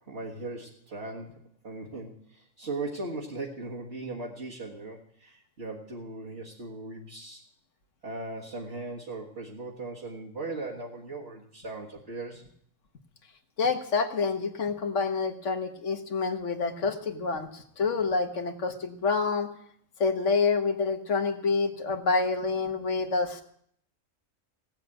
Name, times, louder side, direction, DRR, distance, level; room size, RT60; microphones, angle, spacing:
voice 1, 0.1-7.4 8.0-12.4, right 2 dB, 55° right, -5 dB, 1.9 m, -38 dB
voice 2, 13.6-19.5 20.0-23.4, left 4 dB, 70° left, 6 dB, 1.7 m, -27 dB
17.0 x 7.5 x 8.8 m, 0.66 s
omnidirectional pair, 1.3 m